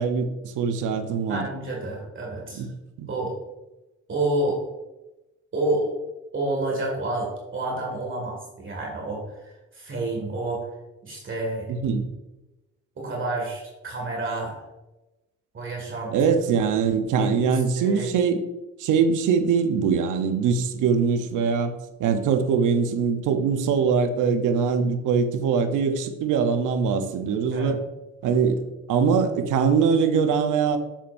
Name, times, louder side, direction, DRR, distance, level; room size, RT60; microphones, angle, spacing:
voice 1, 0.0-1.5 2.5-2.7 3.0-3.1 11.7-12.1 16.1-18.4 18.8-21.7 22.0-27.8 28.2-30.8, right 6 dB, 85° right, 9 dB, 0.8 m, -22 dB
voice 2, 0.9-2.6 3.1-3.3 4.1-4.6 5.5-5.9 6.3-10.6 11.0-11.7 13.0-14.6 15.5-16.1 17.2-18.1 27.5-27.7, right 2 dB, 40° right, -2 dB, 2.0 m, -29 dB
7.3 x 7.0 x 2.6 m, 1.0 s
cardioid pair, 90°, 30 cm